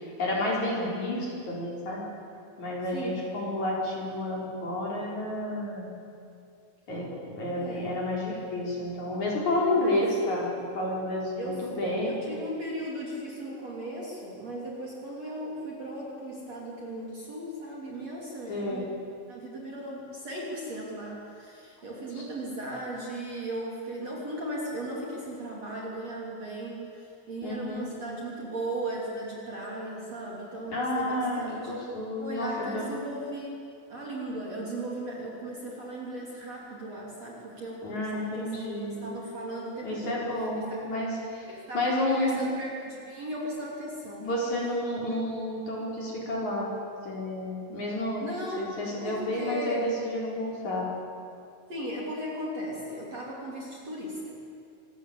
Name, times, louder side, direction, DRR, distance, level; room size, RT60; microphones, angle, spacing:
voice 1, 0.0-2.0 2.6-6.0 6.9-12.1 18.5-18.9 22.2-22.3 27.4-27.9 30.7-32.9 37.8-39.2 39.8-41.5 41.7-42.4 44.2-46.7 47.0-48.2 48.6-50.9, left 1 dB, 40° left, -3 dB, 5.2 m, -30 dB
voice 2, 2.9-3.2 7.5-8.1 9.8-10.1 11.4-11.6 12.0-18.9 19.3-31.7 32.2-40.2 40.7-40.8 41.5-44.3 48.2-48.7 49.0-49.9 51.7-54.4, right 1 dB, 35° right, -3 dB, 3.8 m, -37 dB
26.0 x 20.0 x 8.6 m, 2.5 s
omnidirectional pair, 5.7 m